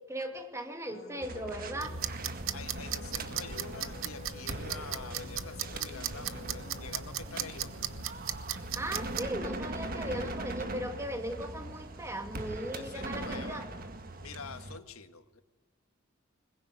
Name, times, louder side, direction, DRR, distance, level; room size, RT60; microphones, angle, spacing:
voice 1, 0.1-2.0 8.8-13.7, right 1 dB, 15° right, 5 dB, 2.4 m, -38 dB
sound 1, 0.9-8.0, left 3 dB, 45° left, 1.1 m, -50 dB
sound 2, 1.2-14.8, right 2 dB, 40° right, 1.7 m, -41 dB
sound 3, 1.8-9.2, right 9 dB, 70° right, 1.1 m, -38 dB
voice 2, 2.5-7.9 10.0-10.4 12.7-13.6 14.2-15.4, left 5 dB, 90° left, 9 dB, 1.7 m, -46 dB
21.5 x 21.0 x 9.7 m, 1.2 s
head